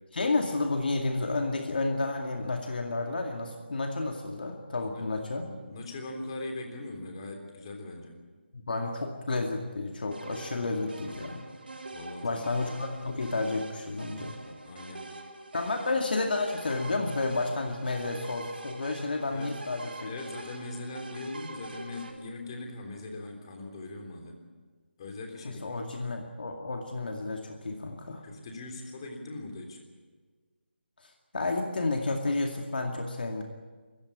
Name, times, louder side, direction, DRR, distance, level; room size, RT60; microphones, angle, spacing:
voice 1, 0.1-5.4 8.7-11.4 12.2-14.3 15.5-20.1 25.4-28.2 31.0-33.4, left 3 dB, 55° left, 2 dB, 2.3 m, -31 dB
voice 2, 5.4-8.2 10.6-11.0 11.9-12.4 14.4-15.1 19.3-19.6 20.0-24.4 25.0-25.6 28.2-29.8, left 2 dB, 25° left, 3 dB, 3.5 m, -41 dB
sound 1, 10.1-22.1, right 2 dB, 60° right, 3.6 m, -44 dB
24.5 x 15.5 x 8.8 m, 1.5 s
figure-of-eight pair, 160°, 6 cm